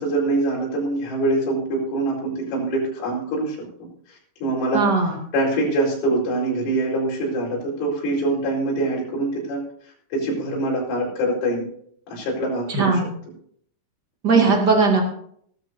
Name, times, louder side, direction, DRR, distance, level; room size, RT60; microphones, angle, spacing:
voice 1, 0.0-3.6 4.1-4.8 5.3-9.6 10.1-11.7 12.1-13.0 14.3-14.5, right 2 dB, 85° left, -3 dB, 7.1 m, -24 dB
voice 2, 4.7-5.2 12.7-13.1 14.2-15.0, right 4 dB, 35° right, 0 dB, 1.7 m, -18 dB
18.0 x 13.0 x 2.7 m, 0.64 s
omnidirectional pair, 5.6 m